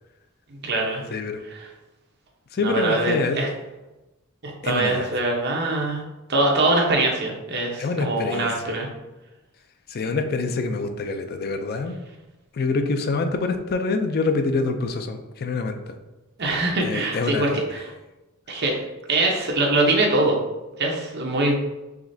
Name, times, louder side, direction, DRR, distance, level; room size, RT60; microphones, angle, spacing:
voice 1, 0.5-1.0 2.6-3.5 4.4-6.0 6.3-8.9 16.4-17.8 18.5-18.7 19.1-20.4 20.8-21.5, right 2 dB, 55° right, -1 dB, 0.9 m, -23 dB
voice 2, 1.1-1.4 2.5-3.4 4.6-5.1 7.8-8.8 9.9-12.0 12.5-16.0 16.8-17.6, left 3 dB, 50° left, 7 dB, 0.4 m, -26 dB
4.9 x 3.2 x 2.7 m, 1.0 s
head